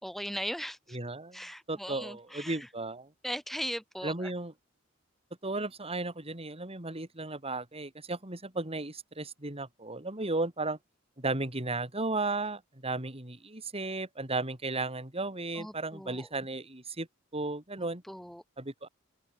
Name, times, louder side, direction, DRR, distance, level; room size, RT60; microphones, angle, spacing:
voice 1, 0.0-0.8 1.3-2.6 3.2-4.3 15.6-16.3 17.8-18.4, equal, ahead, 4.3 m, -38 dB
voice 2, 0.9-1.4 1.7-3.1 4.0-4.5 5.4-10.8 11.2-17.1 17.3-18.0 18.6-18.9, right 2 dB, 30° right, 3.9 m, -35 dB
open air
head